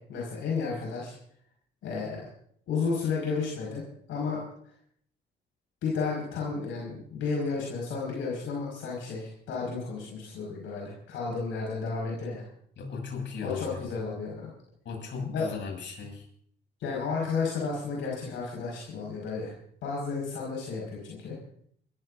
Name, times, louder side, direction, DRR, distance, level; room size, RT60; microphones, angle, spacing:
voice 1, 0.1-1.1 1.8-2.2 2.7-3.8 4.1-4.4 5.8-12.4 13.4-14.5 15.2-15.6 16.8-19.5 19.8-21.4, left 4 dB, 85° left, -3 dB, 5.7 m, -32 dB
voice 2, 12.8-13.6 14.9-16.3, left 5 dB, 65° left, 1 dB, 7.0 m, -37 dB
28.5 x 15.0 x 2.7 m, 0.64 s
cardioid pair, 90°, 20 cm